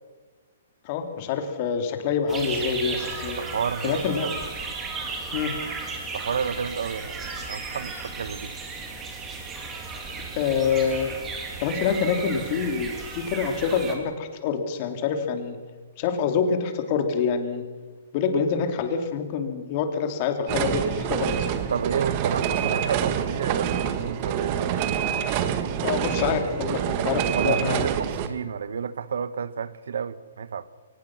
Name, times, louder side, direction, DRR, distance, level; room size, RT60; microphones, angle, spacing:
voice 1, 0.8-3.4 3.8-4.3 5.3-5.5 10.3-11.2 11.6-15.6 16.0-17.6 18.1-21.5 25.8-27.9, left 6 dB, 35° left, 2.7 m, -26 dB
sound 1, 2.3-14.0, right 4 dB, 15° right, 3.2 m, -35 dB
voice 2, 3.0-4.4 6.1-8.5 21.7-25.0 27.3-30.7, right 6 dB, 75° right, 1.2 m, -30 dB
sound 2, 20.5-28.3, right 9 dB, 35° right, 1.5 m, -26 dB
23.5 x 19.5 x 6.0 m
hypercardioid pair, 160°, 0 cm